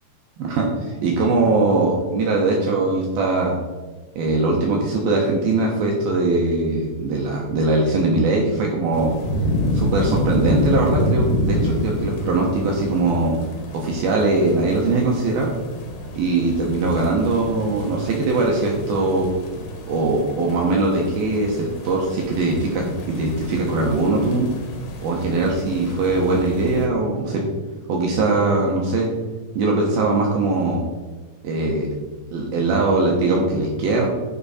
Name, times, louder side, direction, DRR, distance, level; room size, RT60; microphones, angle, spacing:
voice 1, 0.4-3.6 4.2-9.1 9.7-13.4 13.7-15.5 16.1-19.3 19.9-24.5 25.0-27.4 27.9-29.1 29.6-30.8 31.4-31.9 32.3-34.1, right 2 dB, 70° right, -2 dB, 2.6 m, -21 dB
sound 1, 8.9-26.9, left 1 dB, 75° left, 3.5 m, -28 dB
12.0 x 6.0 x 4.2 m, 1.3 s
omnidirectional pair, 5.0 m